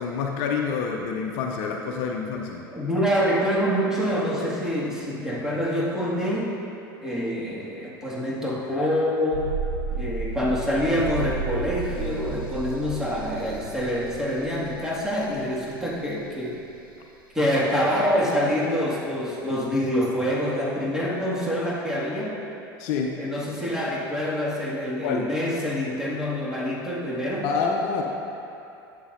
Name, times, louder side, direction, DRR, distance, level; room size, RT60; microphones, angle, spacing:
voice 1, 0.0-2.6 22.8-23.2 25.0-25.3 27.4-28.0, left 5 dB, 60° left, 2 dB, 0.7 m, -27 dB
voice 2, 2.7-6.6 7.0-9.5 9.9-16.6 17.3-22.3 23.2-27.4, equal, 5° right, -6 dB, 2.0 m, -26 dB
sound 1, 9.3-16.1 16.4-16.5, right 4 dB, 75° right, 0.6 m, -33 dB
11.0 x 7.7 x 2.6 m, 2.7 s
hypercardioid pair, 80°, 12 cm